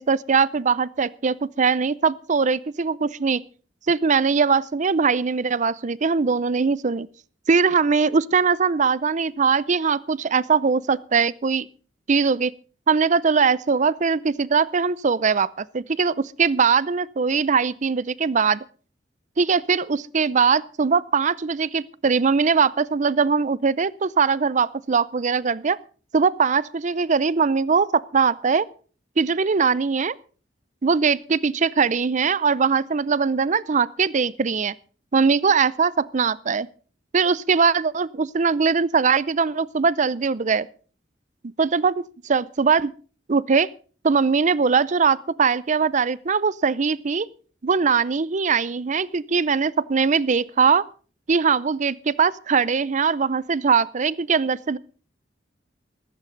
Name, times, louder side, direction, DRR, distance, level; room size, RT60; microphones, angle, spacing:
voice 1, 0.0-3.4 3.9-7.1 7.5-11.6 12.1-12.5 12.9-18.6 19.4-25.8 26.1-28.7 29.2-30.2 30.8-34.7 35.1-36.7 37.1-40.7 41.6-41.9 42.2-42.9 43.3-43.7 44.0-47.3 47.6-50.8 51.3-54.8, right 5 dB, 40° right, 0.5 m, -21 dB
15.0 x 14.5 x 3.9 m
head